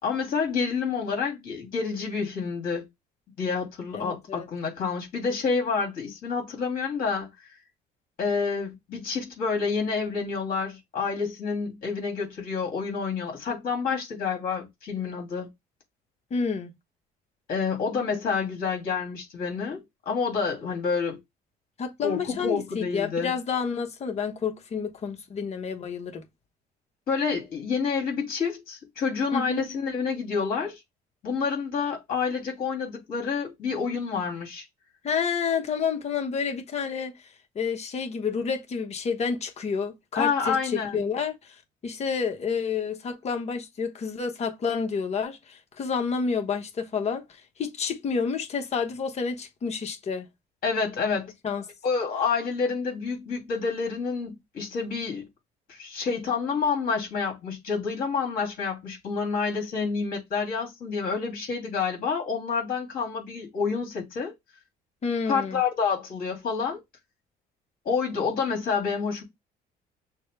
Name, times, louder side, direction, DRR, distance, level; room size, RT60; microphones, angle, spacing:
voice 1, 0.0-2.9 3.4-7.3 8.2-15.5 17.5-21.2 22.0-23.3 27.1-30.8 31.2-34.6 40.1-41.1 50.6-51.3 51.8-55.2 55.7-64.3 65.3-66.8 67.8-69.2, left 5 dB, 60° left, 2.6 m, -28 dB
voice 2, 3.9-4.5 16.3-16.7 21.8-26.2 29.3-29.6 35.0-37.1 37.5-41.4 41.8-47.2 47.6-50.3 51.4-51.6 65.0-65.6, left 5 dB, 40° left, 1.0 m, -29 dB
6.3 x 2.2 x 3.2 m
cardioid pair, 110°, 17 cm